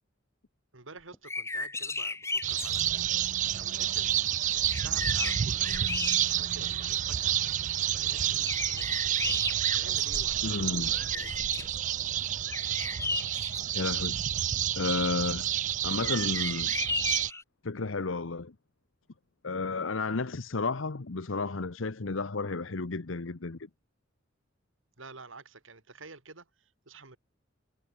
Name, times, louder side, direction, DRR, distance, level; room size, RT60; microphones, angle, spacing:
voice 1, 0.7-3.2 3.5-7.4 7.9-8.9 9.7-11.4 25.0-27.2, right 3 dB, 80° right, 3.6 m, -50 dB
sound 1, 1.1-2.9 4.3-4.4 4.7-6.6 7.2-7.3 8.5-10.5 10.9-11.8 12.5-13.6 16.0-17.4, left 3 dB, 15° left, 2.0 m, -35 dB
sound 2, 2.4-17.3, right 11 dB, 40° right, 0.4 m, -29 dB
voice 2, 10.4-10.9 13.7-14.2 14.8-15.5 15.8-16.7 17.6-18.5 19.4-23.7, left 3 dB, 75° left, 1.0 m, -32 dB
head